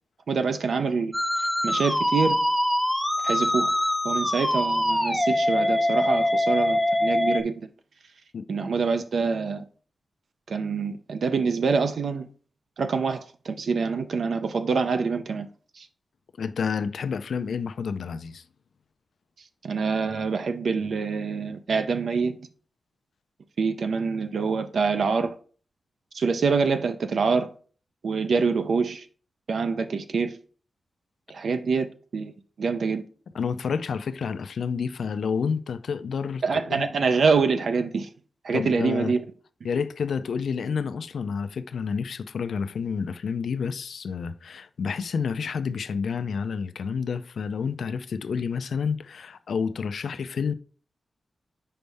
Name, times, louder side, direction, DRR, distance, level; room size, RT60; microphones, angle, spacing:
voice 1, 0.3-1.1 1.6-2.4 3.2-3.7 4.0-7.7 8.5-9.6 10.5-12.3 12.8-15.5 15.8-15.9 19.6-22.4 23.6-25.3 26.1-27.5 28.0-29.0 29.5-30.4 31.3-32.3 32.6-33.0 36.4-38.1 38.4-39.2, right 5 dB, 65° right, 0.5 m, -25 dB
Musical instrument, 1.1-7.4, left 1 dB, ahead, 0.6 m, -24 dB
voice 2, 16.4-18.4 33.3-36.9 38.5-39.2 39.6-50.5, left 6 dB, 75° left, 0.4 m, -29 dB
6.5 x 5.3 x 3.4 m
wide cardioid pair, 180°, 0 cm